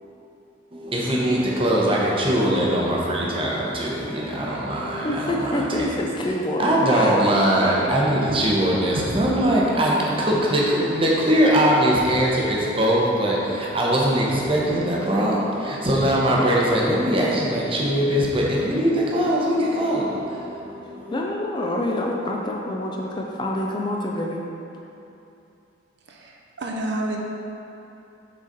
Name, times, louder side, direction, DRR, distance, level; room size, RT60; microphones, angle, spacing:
voice 1, 0.7-6.0 6.5-21.2, right 1 dB, 25° right, -4 dB, 0.8 m, -21 dB
voice 2, 5.0-7.1 21.1-24.4, left 1 dB, 25° left, -1 dB, 0.4 m, -27 dB
voice 3, 26.0-27.2, right 1 dB, 60° right, 0 dB, 0.6 m, -29 dB
6.3 x 3.9 x 4.0 m, 2.9 s
head